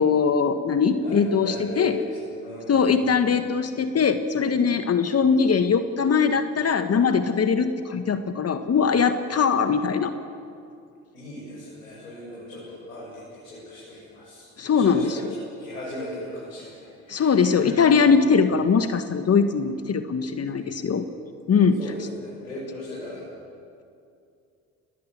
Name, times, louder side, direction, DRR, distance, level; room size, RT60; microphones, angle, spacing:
voice 1, 0.0-2.0 2.7-10.1 14.6-15.2 17.1-21.1 21.5-21.8, left 6 dB, 35° left, 9 dB, 1.7 m, -21 dB
voice 2, 1.0-3.2 11.1-15.2 15.6-17.9 18.4-18.6 20.5-20.8 21.8-23.2, left 1 dB, 90° left, -7 dB, 7.3 m, -38 dB
29.5 x 21.0 x 7.7 m, 2.5 s
hypercardioid pair, 55°, 41 cm